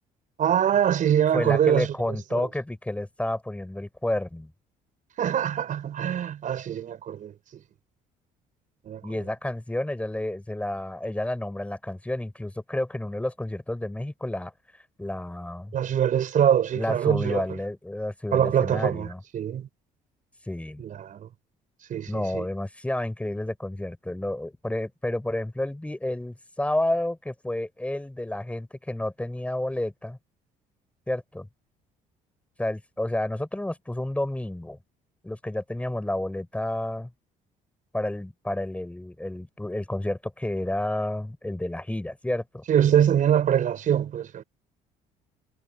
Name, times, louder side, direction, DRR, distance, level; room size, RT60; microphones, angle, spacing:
voice 1, 0.4-1.9 2.3-2.5 5.2-7.6 8.8-9.0 15.7-17.4 18.3-19.7 20.8-21.3 21.9-22.5 42.7-44.4, right 9 dB, 55° right, 5.1 m, -24 dB
voice 2, 1.3-4.5 9.0-14.5 15.0-15.7 16.7-19.2 20.5-20.8 22.1-30.2 31.1-31.5 32.6-34.8 35.2-37.1 37.9-42.6, left 1 dB, 10° left, 5.0 m, -30 dB
supercardioid pair, 80°, 16 cm